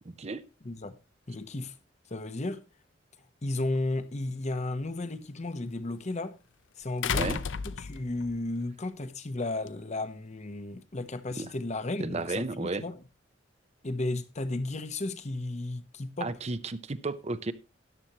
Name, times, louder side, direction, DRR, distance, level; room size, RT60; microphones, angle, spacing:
voice 1, 0.6-0.9 1.3-1.7 2.1-2.6 3.4-6.4 6.8-7.3 7.6-13.0 13.8-16.3, left 2 dB, 40° left, 0.9 m, -34 dB
sound 1, 3.8-3.9 7.0-8.3 9.7-9.8, left 6 dB, 80° left, 0.6 m, -31 dB
voice 2, 12.0-12.8 16.2-17.5, right 3 dB, 35° right, 0.6 m, -33 dB
13.5 x 9.9 x 2.9 m
head